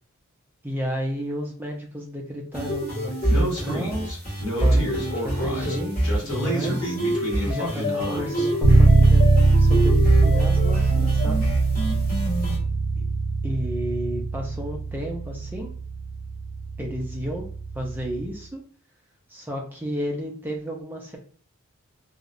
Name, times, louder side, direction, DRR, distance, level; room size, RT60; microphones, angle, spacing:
voice 1, 0.6-4.1 4.6-7.0 7.5-9.2 9.6-11.5 13.4-15.7 16.8-17.5 17.7-18.6 19.3-21.2, equal, 10° right, 0 dB, 0.4 m, -32 dB
sound 1, 2.5-12.6, equal, 40° left, 1.4 m, -26 dB
Speech, 3.3-8.5, right 1 dB, 60° left, 1.1 m, -30 dB
Bass guitar, 8.6-18.3, right 3 dB, 70° right, 0.5 m, -21 dB
2.7 x 2.0 x 2.5 m, 0.43 s
head